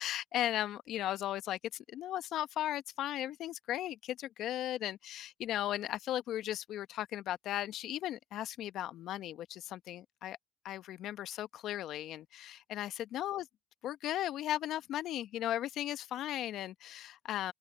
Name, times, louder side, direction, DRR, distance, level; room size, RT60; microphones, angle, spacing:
voice 1, 0.0-10.4 10.6-13.4 13.8-17.5, left 12 dB, 70° left, 1.2 m, -36 dB
open air
hypercardioid pair, 50°, 0 cm